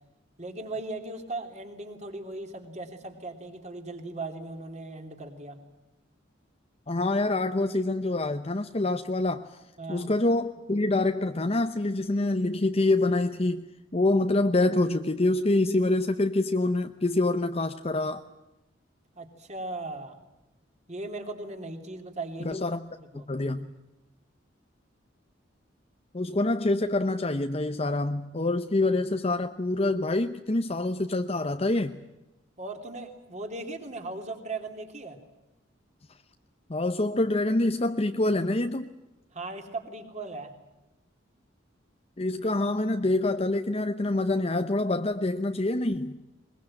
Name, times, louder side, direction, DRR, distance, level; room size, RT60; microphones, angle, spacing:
voice 1, 0.4-5.6 9.8-10.1 19.1-20.2 20.9-22.6 23.1-23.3 32.6-35.2 39.3-40.5, right 2 dB, 35° right, 3.2 m, -38 dB
voice 2, 6.9-9.6 9.9-13.6 13.9-18.2 22.4-22.8 23.1-23.7 26.1-32.0 36.7-38.9 42.2-46.2, left 2 dB, 30° left, 0.8 m, -26 dB
22.0 x 22.0 x 8.9 m
head